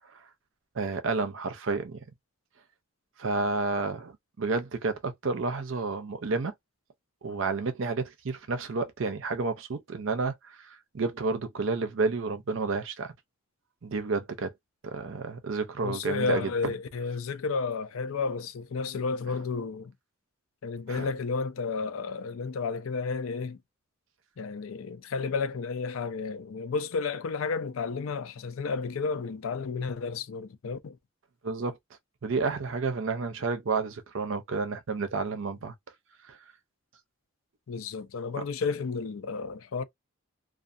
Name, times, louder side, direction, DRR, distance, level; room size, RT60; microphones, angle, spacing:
voice 1, 0.8-2.0 3.2-6.5 7.2-13.1 13.8-14.5 14.8-16.7 20.9-21.1 31.4-31.8 32.2-35.7 36.3-36.4, right 4 dB, 65° right, 0.5 m, -30 dB
voice 2, 15.8-19.9 20.6-23.6 24.4-31.0 37.7-39.8, left 4 dB, 80° left, 0.4 m, -32 dB
2.5 x 2.3 x 2.5 m
head